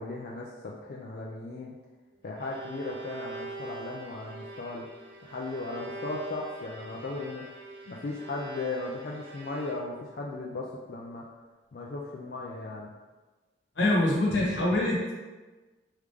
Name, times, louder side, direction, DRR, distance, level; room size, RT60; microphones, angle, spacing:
voice 1, 0.0-1.7 2.2-4.9 5.2-7.5 7.9-11.2 11.7-12.9, left 2 dB, 55° left, -3 dB, 0.4 m, -36 dB
Bowed string instrument, 2.1-10.2, right 3 dB, 75° right, 0.6 m, -44 dB
voice 2, 13.8-15.1, left 1 dB, 85° left, -4 dB, 1.1 m, -25 dB
3.6 x 3.2 x 3.4 m, 1.3 s
head